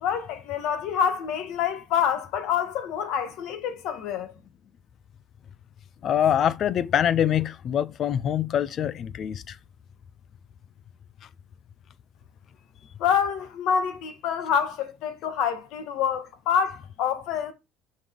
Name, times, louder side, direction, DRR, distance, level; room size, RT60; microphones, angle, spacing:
voice 1, 0.0-4.3 13.0-17.5, left 8 dB, 65° left, 1.2 m, -27 dB
voice 2, 6.0-9.6, left 9 dB, 40° left, 0.4 m, -24 dB
6.1 x 5.3 x 3.6 m
cardioid pair, 150°, 0 cm